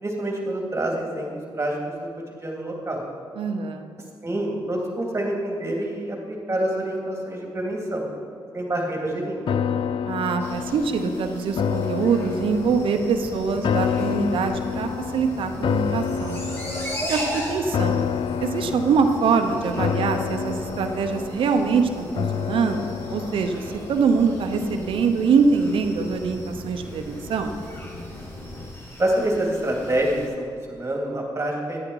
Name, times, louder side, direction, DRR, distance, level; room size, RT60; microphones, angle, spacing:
voice 1, 0.0-2.1 2.4-3.0 4.2-8.0 8.5-9.5 29.0-30.3 30.7-31.8, right 1 dB, 30° right, -1 dB, 2.7 m, -27 dB
voice 2, 3.4-3.9 10.0-16.4 17.0-18.1 18.4-22.8 23.1-27.5, right 5 dB, 80° right, 6 dB, 0.8 m, -24 dB
sound 1, 9.5-24.8 25.1-25.2, left 7 dB, 70° left, 0.4 m, -29 dB
sound 2, 10.4-30.3, equal, 25° left, 2.6 m, -39 dB
sound 3, 12.5-28.7, left 2 dB, 50° left, 2.8 m, -40 dB
11.0 x 8.7 x 4.7 m, 2.2 s
cardioid pair, 60°, 9 cm